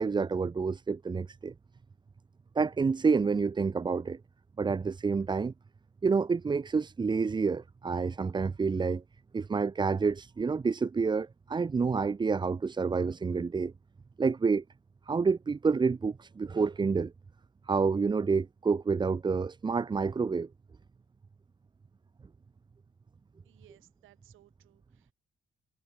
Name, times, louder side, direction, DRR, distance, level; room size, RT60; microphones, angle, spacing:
voice 1, 0.0-1.5 2.6-4.2 4.6-5.5 6.0-9.0 9.3-13.7 14.2-14.6 15.1-17.1 17.7-20.5, right 5 dB, 20° right, 0.6 m, -28 dB
voice 2, 23.4-25.1, right 15 dB, 90° right, 3.3 m, -62 dB
cardioid pair, 90°, 20 cm